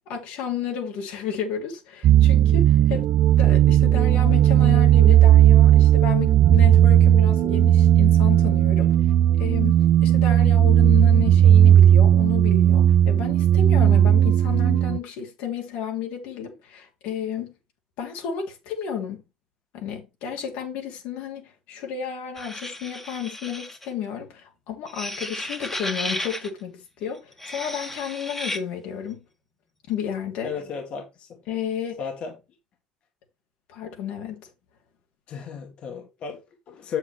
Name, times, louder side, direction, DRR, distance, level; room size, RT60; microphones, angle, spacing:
voice 1, 0.1-3.0 3.4-8.9 9.4-17.5 18.0-19.2 19.7-29.2 29.9-30.5 31.5-32.0 33.7-34.5, left 8 dB, 80° left, 3.1 m, -32 dB
sound 1, 2.0-15.0, right 11 dB, 55° right, 0.4 m, -16 dB
voice 2, 8.8-9.1 30.4-31.3 32.0-32.4 35.3-37.0, left 6 dB, 50° left, 1.9 m, -35 dB
sound 2, 22.4-23.9 24.9-26.5 27.3-28.6, left 1 dB, 10° left, 1.5 m, -33 dB
7.6 x 7.4 x 3.4 m
cardioid pair, 120°, 2 cm